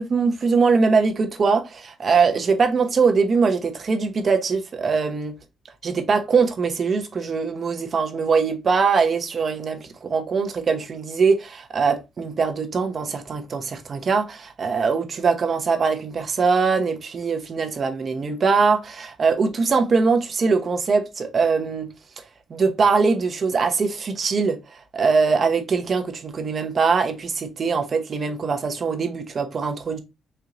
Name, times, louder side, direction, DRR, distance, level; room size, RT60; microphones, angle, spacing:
voice 1, 0.0-5.3 5.8-21.9 22.2-22.3 22.5-30.0, right 5 dB, 45° right, 0.8 m, -22 dB
4.4 x 2.8 x 2.5 m
cardioid pair, 90°, 0 cm